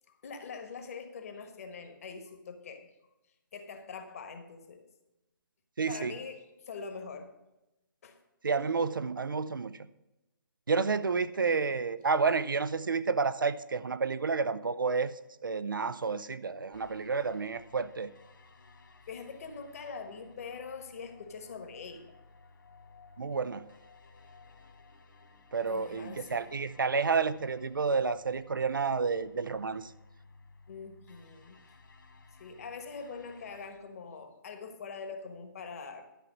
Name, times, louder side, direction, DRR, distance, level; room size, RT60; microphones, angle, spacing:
voice 1, 0.2-2.9 3.5-4.8 5.9-7.3 8.0-8.2 11.5-11.9 19.1-22.0 25.7-26.5 30.7-31.6 32.4-36.0, left 5 dB, 40° left, 1.2 m, -43 dB
voice 2, 5.8-6.1 8.4-9.7 10.7-15.1 15.4-18.1 23.2-23.6 25.5-29.9, right 4 dB, 65° right, 0.5 m, -30 dB
sound 1, 16.7-33.7, left 3 dB, 60° left, 1.2 m, -57 dB
11.5 x 5.8 x 6.0 m
figure-of-eight pair, 140°, 12 cm